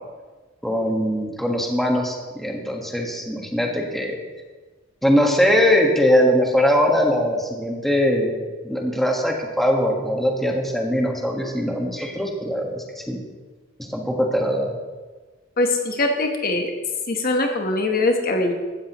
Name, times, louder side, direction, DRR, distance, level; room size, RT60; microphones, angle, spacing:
voice 1, 0.6-4.2 5.0-13.2 13.8-14.7, equal, ahead, 0 dB, 1.5 m, -21 dB
voice 2, 15.6-16.7 17.1-18.5, left 2 dB, 45° left, 3 dB, 1.2 m, -22 dB
16.0 x 13.0 x 3.1 m, 1.3 s
head